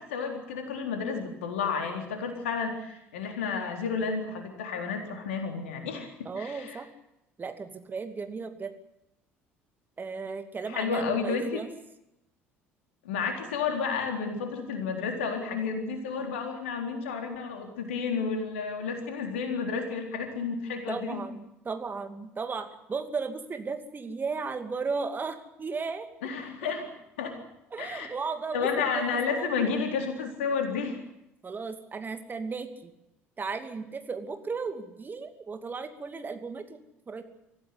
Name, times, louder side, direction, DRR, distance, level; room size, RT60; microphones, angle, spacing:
voice 1, 0.0-6.8 10.7-11.6 13.0-21.2 26.2-26.9 27.2-27.4 27.8-28.1 28.5-31.0, left 5 dB, 70° left, 4 dB, 4.0 m, -31 dB
voice 2, 6.2-6.9 7.4-8.7 10.0-11.7 20.9-26.1 26.6-26.7 27.7-29.1 29.4-29.7 31.4-32.9 33.4-36.8 37.1-37.2, right 4 dB, 30° right, 8 dB, 2.6 m, -35 dB
25.5 x 15.5 x 9.7 m, 0.85 s
figure-of-eight pair, 55°, 7 cm